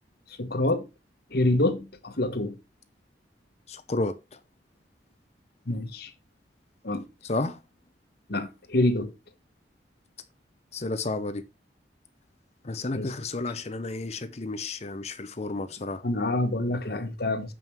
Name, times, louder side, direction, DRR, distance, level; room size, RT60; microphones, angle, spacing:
voice 1, 0.4-0.8 1.3-2.5 5.7-6.1 6.8-7.0 8.3-9.1 12.9-13.1 16.0-17.5, left 1 dB, 60° left, 1.3 m, -26 dB
voice 2, 3.7-4.4 7.2-7.6 10.7-11.4 12.6-16.0, left 2 dB, 35° left, 0.7 m, -32 dB
7.6 x 5.6 x 4.5 m
head